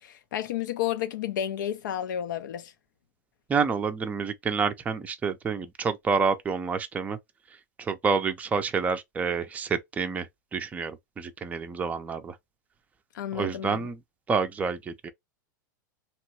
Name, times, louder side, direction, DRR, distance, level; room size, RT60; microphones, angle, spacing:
voice 1, 0.0-2.7 13.1-13.9, left 10 dB, 80° left, 0.4 m, -31 dB
voice 2, 3.5-7.2 7.8-10.3 10.5-12.3 13.3-14.0 14.3-15.1, right 5 dB, 15° right, 0.4 m, -28 dB
3.0 x 2.2 x 2.8 m
hypercardioid pair, 120°, 10 cm